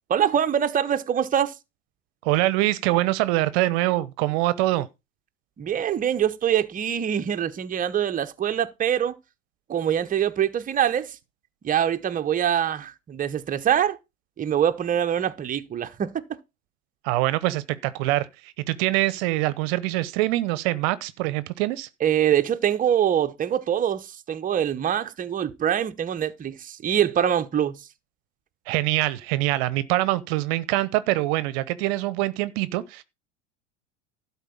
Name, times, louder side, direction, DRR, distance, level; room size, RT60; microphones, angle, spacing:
voice 1, 0.1-1.5 5.6-9.2 9.7-11.2 11.6-14.0 14.4-16.2 22.0-27.8, right 9 dB, 20° right, 0.9 m, -24 dB
voice 2, 2.2-4.9 17.0-21.9 28.7-33.0, right 17 dB, 55° right, 0.9 m, -24 dB
12.0 x 4.3 x 7.2 m
hypercardioid pair, 85°, 36 cm